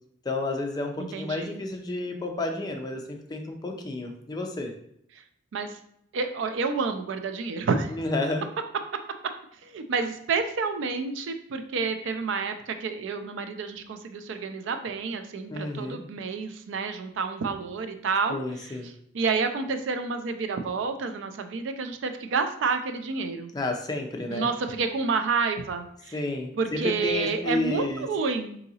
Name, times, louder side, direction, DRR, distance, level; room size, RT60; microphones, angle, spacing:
voice 1, 0.2-4.7 8.0-8.4 15.5-16.0 18.3-18.9 23.5-24.5 26.1-28.1, left 2 dB, 20° left, 2 dB, 0.4 m, -31 dB
voice 2, 1.0-1.5 5.5-5.8 6.1-8.0 9.6-18.7 19.1-23.5 24.3-26.2 26.5-28.6, right 4 dB, 70° right, 7 dB, 0.4 m, -29 dB
3.7 x 2.7 x 2.7 m, 0.71 s
head